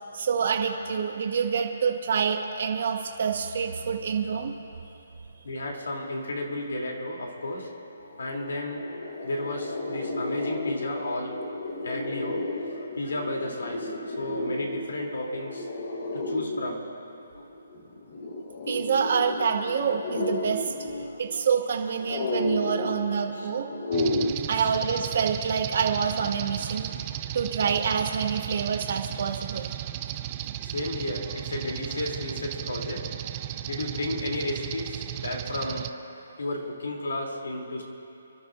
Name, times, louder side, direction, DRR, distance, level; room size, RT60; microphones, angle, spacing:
voice 1, 0.1-4.5 18.7-20.7 21.2-23.7 24.5-26.9 27.3-29.7, right 6 dB, 55° right, 2 dB, 1.8 m, -27 dB
voice 2, 5.4-7.7 8.2-8.8 9.2-11.4 11.8-12.4 12.7-15.7 16.1-16.9 21.0-21.2 22.2-22.3 23.3-23.5 24.5-24.7 30.6-33.1 33.7-35.9 36.4-37.8, left 1 dB, 90° left, 0 dB, 3.3 m, -33 dB
sound 1, 7.8-7.9 8.1-24.3, left 2 dB, 40° left, 1.3 m, -33 dB
sound 2, 23.9-35.9, right 12 dB, 25° right, 0.5 m, -35 dB
29.5 x 12.0 x 2.7 m, 2.9 s
hypercardioid pair, 165°, 0 cm